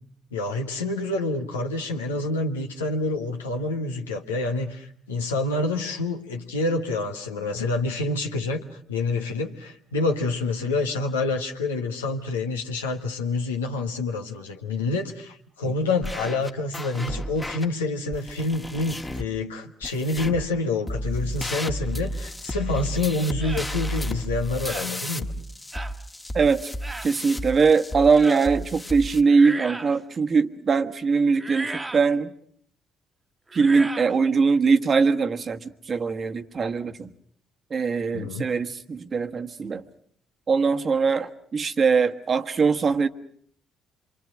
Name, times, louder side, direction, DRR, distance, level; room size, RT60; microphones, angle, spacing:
voice 1, 0.3-8.6 8.9-25.3 38.1-38.5, left 3 dB, 90° left, 3 dB, 1.4 m, -27 dB
sound 1, 16.0-17.6 18.1-19.3 19.8-20.5 20.9-29.2, equal, 15° left, 1.5 m, -32 dB
sound 2, 23.4-23.7 24.6-24.9 25.7-26.0 26.8-27.1 28.1-28.5 29.2-30.0 31.3-32.1 33.5-34.1, right 2 dB, 25° right, 1.4 m, -35 dB
voice 2, 26.3-26.7 27.0-32.3 33.5-37.1 37.7-39.8 40.5-43.1, right 5 dB, 45° right, 8 dB, 1.4 m, -21 dB
27.0 x 24.0 x 6.4 m, 0.62 s
hypercardioid pair, 50°, 0 cm